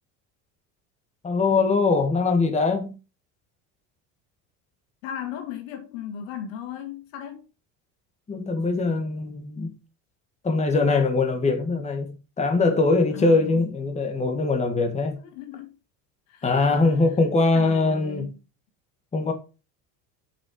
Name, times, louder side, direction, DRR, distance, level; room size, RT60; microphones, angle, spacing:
voice 1, 1.2-3.0 8.3-9.7 10.4-15.2 16.4-18.3 19.1-19.3, left 3 dB, 15° left, 1.8 m, -22 dB
voice 2, 5.0-7.5 13.1-13.6 15.2-15.8 16.3-17.0 17.5-18.4, left 8 dB, 85° left, 2.3 m, -36 dB
6.8 x 5.8 x 4.7 m
supercardioid pair, 120°, 39 cm